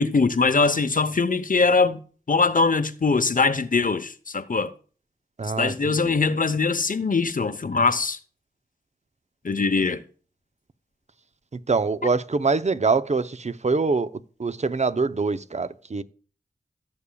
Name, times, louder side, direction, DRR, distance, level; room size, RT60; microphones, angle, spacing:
voice 1, 0.0-2.0 2.3-4.7 5.6-8.2 9.4-10.0, left 4 dB, 55° left, 0.9 m, -22 dB
voice 2, 5.4-6.2 11.7-14.1 14.4-16.0, right 4 dB, 40° right, 0.6 m, -24 dB
16.0 x 6.9 x 2.3 m
cardioid pair, 45°, 17 cm